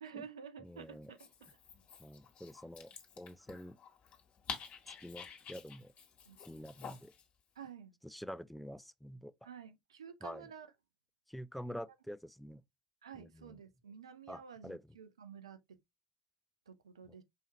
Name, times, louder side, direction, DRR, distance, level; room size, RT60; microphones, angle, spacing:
voice 1, 0.0-1.3 6.3-6.4 7.6-8.0 9.4-10.7 11.7-11.8 13.0-15.8 16.7-17.2, right 7 dB, 85° right, 0.4 m, -51 dB
voice 2, 0.6-1.1 2.0-3.8 5.0-5.9 6.5-7.1 8.0-9.5 10.2-10.5 11.3-12.6 13.1-13.6 14.3-15.0 17.0-17.2, equal, ahead, 0.3 m, -47 dB
Dog, 1.0-7.3, left 7 dB, 45° left, 1.3 m, -49 dB
4.8 x 2.8 x 2.7 m
hypercardioid pair, 65°, 3 cm